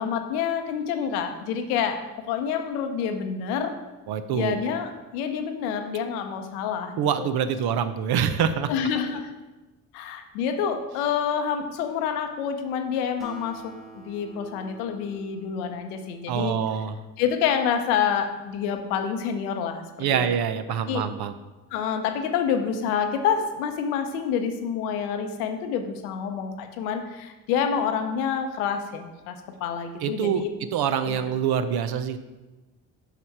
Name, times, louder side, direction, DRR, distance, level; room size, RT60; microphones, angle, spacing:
voice 1, 0.0-2.0 2.3-3.7 4.3-7.3 8.7-9.3 9.9-16.5 17.2-19.8 20.1-20.3 20.9-21.0 21.7-29.4 29.6-30.5 31.0-31.2, left 7 dB, 90° left, 6 dB, 0.8 m, -27 dB
voice 2, 4.1-4.6 7.0-8.7 16.3-17.0 20.0-21.3 30.0-30.4 30.7-32.2, right 8 dB, 60° right, 10 dB, 0.7 m, -25 dB
Acoustic guitar, 13.2-16.9, right 1 dB, ahead, 1.5 m, -47 dB
5.9 x 5.7 x 4.6 m, 1.1 s
hypercardioid pair, 60°, 43 cm